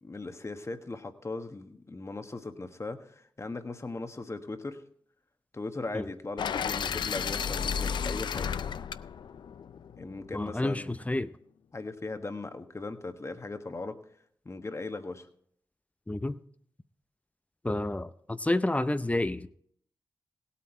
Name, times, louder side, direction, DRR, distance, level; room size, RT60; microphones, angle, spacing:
voice 1, 0.0-4.8 5.5-8.6 10.0-10.9 11.7-14.0 14.4-15.3, left 3 dB, 35° left, 1.3 m, -38 dB
sound 1, 6.4-10.4, left 7 dB, 70° left, 0.4 m, -33 dB
voice 2, 10.3-11.3 16.1-16.4 17.6-19.5, left 1 dB, 15° left, 0.6 m, -29 dB
17.0 x 8.5 x 4.4 m
supercardioid pair, 40°, 8 cm